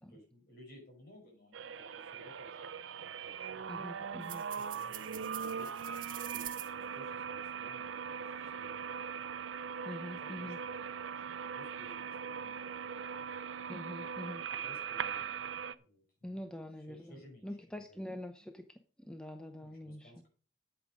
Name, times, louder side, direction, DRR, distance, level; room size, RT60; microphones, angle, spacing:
voice 1, 0.0-2.7 3.1-3.5 4.6-8.9 10.1-13.0 14.4-15.5 15.8-16.4 16.8-18.2 19.6-20.3, equal, 50° left, 0 dB, 5.5 m, -58 dB
sound 1, 1.5-15.7, right 7 dB, 85° right, 0.6 m, -40 dB
voice 2, 3.7-4.4 9.9-10.6 13.7-14.4 16.2-17.0 17.4-18.7 19.0-20.1, left 1 dB, 5° left, 6 dB, 0.6 m, -44 dB
sound 2, 4.2-6.7, right 13 dB, 45° right, 0.8 m, -46 dB
8.8 x 8.0 x 5.1 m, 0.39 s
head